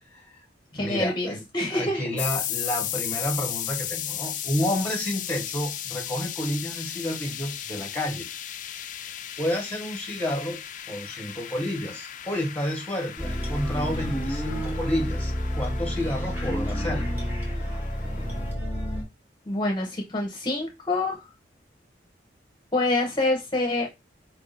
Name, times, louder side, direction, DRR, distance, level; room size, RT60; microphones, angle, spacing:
voice 1, 0.1-0.4 0.7-1.4 1.7-8.3 8.7-9.0 9.4-10.6 10.9-17.0, left 1 dB, 10° left, 2 dB, 1.2 m, -30 dB
voice 2, 0.7-2.0 19.5-21.3 22.7-23.9, left 2 dB, 25° left, 1 dB, 0.9 m, -26 dB
sound 1, 2.2-18.5, left 11 dB, 45° left, 0.4 m, -36 dB
sound 2, 13.2-19.0, equal, 10° right, 1.3 m, -29 dB
4.6 x 2.7 x 4.0 m, 0.23 s
head